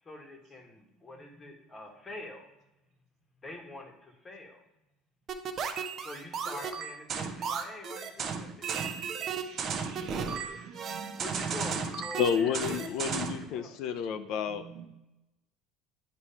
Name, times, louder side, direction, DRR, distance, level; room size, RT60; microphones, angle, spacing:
voice 1, 0.0-2.5 3.4-4.6 6.0-8.8 10.1-10.7 11.2-12.8 13.5-13.7, left 2 dB, 20° left, 3 dB, 1.1 m, -45 dB
sound 1, 5.3-13.5, right 6 dB, 35° right, 0.6 m, -34 dB
voice 2, 9.3-11.2 14.5-14.9, right 7 dB, 55° right, 4 dB, 1.0 m, -47 dB
voice 3, 12.2-14.6, left 7 dB, 55° left, 10 dB, 0.5 m, -30 dB
8.8 x 3.1 x 5.5 m, 0.91 s
cardioid pair, 160°, 0 cm